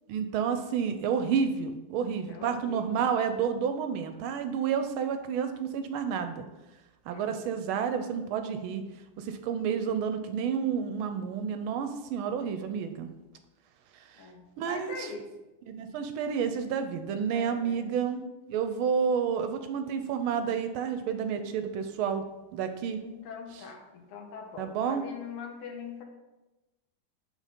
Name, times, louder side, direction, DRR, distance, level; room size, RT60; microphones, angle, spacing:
voice 1, 0.1-6.4 7.1-8.8 9.2-13.1 14.1-14.3 14.6-15.1 15.7-18.2 18.5-22.2 22.5-23.0 24.6-25.0, right 7 dB, 75° right, 8 dB, 1.3 m, -30 dB
voice 2, 2.3-3.0 7.1-7.4 14.1-15.3 17.3-18.1 23.0-26.0, left 5 dB, 90° left, 2 dB, 1.9 m, -43 dB
6.4 x 3.9 x 5.1 m, 1.0 s
omnidirectional pair, 2.4 m